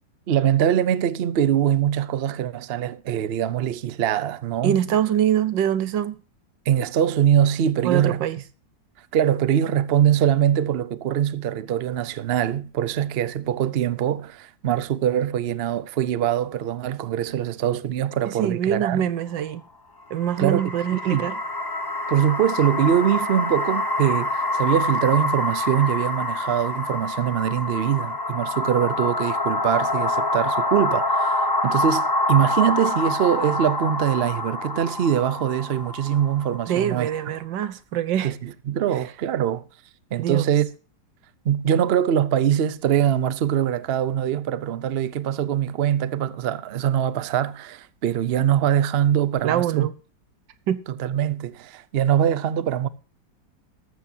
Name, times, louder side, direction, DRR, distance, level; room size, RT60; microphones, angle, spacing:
voice 1, 0.3-4.8 6.7-8.2 9.1-19.1 20.4-21.2 22.1-37.3 38.2-39.6 40.1-40.7 41.4-49.9 50.9-52.9, right 10 dB, 70° right, 0.5 m, -23 dB
voice 2, 4.6-6.2 7.8-8.4 18.3-19.6 20.1-21.3 36.7-38.3 39.0-39.1 40.2-40.5 49.4-49.9 50.7-50.8, right 10 dB, 85° right, 1.6 m, -24 dB
sound 1, 20.1-37.3, left 2 dB, 25° left, 0.5 m, -26 dB
14.0 x 13.0 x 2.7 m
omnidirectional pair, 1.9 m